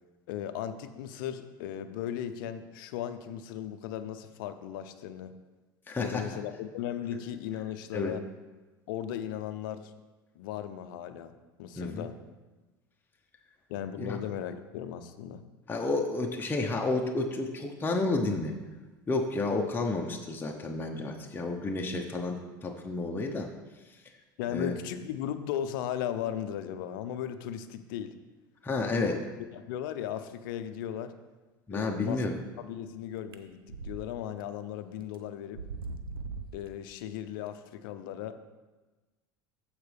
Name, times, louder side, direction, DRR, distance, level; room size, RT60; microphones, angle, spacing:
voice 1, 0.3-5.3 6.0-8.2 8.9-9.9 10.4-11.3 11.6-12.2 13.7-15.4 24.4-28.2 28.8-29.2 29.5-31.1 31.7-32.2 32.6-35.6 36.5-38.4, left 10 dB, 65° left, 10 dB, 0.7 m, -36 dB
voice 2, 5.9-6.2 7.9-8.1 11.8-12.1 14.0-14.2 15.7-18.5 19.1-23.5 24.5-24.7 28.6-29.2 31.7-32.3, left 3 dB, 15° left, 1 dB, 1.0 m, -31 dB
sound 1, 33.3-34.0 34.4-34.5 35.1-35.2 35.5-36.7, right 4 dB, 80° right, 0.7 m, -39 dB
14.5 x 4.9 x 3.5 m, 1.2 s
hypercardioid pair, 80°, 12 cm